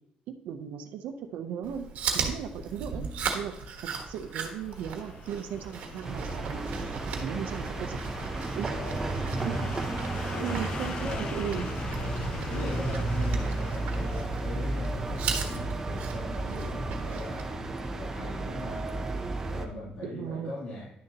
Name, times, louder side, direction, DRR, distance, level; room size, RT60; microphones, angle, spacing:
voice 1, 0.3-1.9 2.1-3.0 3.3-3.5 3.8-8.0 8.5-8.7 9.4-9.5 10.2-11.7 20.0-20.5, right 8 dB, 90° right, 6 dB, 0.7 m, -37 dB
Chewing mastication, 1.6-17.5, right 6 dB, 70° right, 1.3 m, -38 dB
sound 1, 2.2-17.1 17.4-17.5, left 5 dB, 35° left, 0.5 m, -44 dB
sound 2, 6.0-19.7, right 2 dB, 20° right, 0.7 m, -33 dB
voice 2, 8.6-10.6 11.0-11.3 11.9-17.6 17.9-19.1 19.5-21.0, left 1 dB, 80° left, -9 dB, 2.9 m, -40 dB
10.5 x 6.6 x 2.9 m, 0.79 s
cardioid pair, 175°, 3 cm